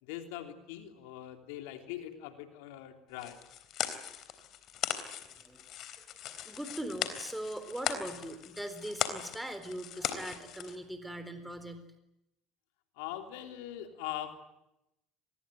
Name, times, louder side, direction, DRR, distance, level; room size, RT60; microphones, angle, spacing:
voice 1, 0.0-3.4 13.0-14.3, left 12 dB, 80° left, 6 dB, 3.3 m, -42 dB
sound 1, 3.2-10.8, left 10 dB, 55° left, 3.5 m, -38 dB
voice 2, 5.3-11.9, right 1 dB, 5° right, 9 dB, 3.9 m, -41 dB
26.0 x 21.0 x 9.3 m, 0.88 s
hypercardioid pair, 80°, 0 cm